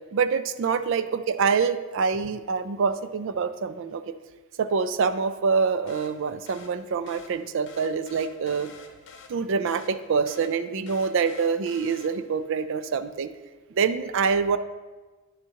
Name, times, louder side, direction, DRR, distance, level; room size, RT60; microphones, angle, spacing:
voice 1, 0.1-4.1 4.6-8.7 9.3-13.3 13.7-14.6, right 5 dB, 65° right, 12 dB, 0.4 m, -25 dB
sound 1, 5.9-12.5, left 4 dB, 60° left, 0.9 m, -49 dB
9.5 x 6.3 x 2.8 m, 1.3 s
head